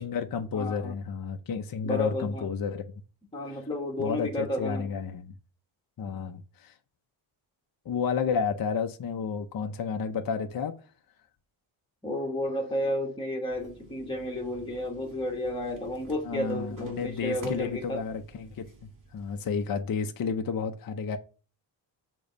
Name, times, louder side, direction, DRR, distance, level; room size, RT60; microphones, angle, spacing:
voice 1, 0.0-2.8 3.5-3.6 4.0-5.3 6.0-6.7 7.8-10.7 16.2-21.2, left 6 dB, 45° left, 0.7 m, -31 dB
voice 2, 0.5-0.9 1.8-2.4 3.3-4.9 12.0-18.0, left 1 dB, 10° left, 1.4 m, -32 dB
sound 1, 13.5-20.0, right 1 dB, 40° right, 2.2 m, -49 dB
6.8 x 3.1 x 5.2 m
wide cardioid pair, 120°, 48 cm